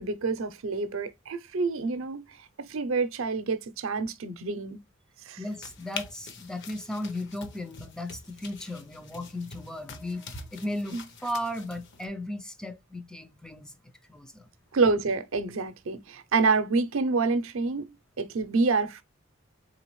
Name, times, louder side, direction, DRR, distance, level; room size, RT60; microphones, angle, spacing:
voice 1, 0.0-4.8 5.3-5.4 10.9-11.0 14.7-19.0, right 4 dB, 80° right, 0.6 m, -27 dB
sound 1, 5.4-12.1, left 4 dB, 60° left, 0.7 m, -45 dB
voice 2, 5.4-13.7 14.1-14.5, left 1 dB, 5° left, 0.4 m, -36 dB
3.9 x 3.3 x 3.0 m
head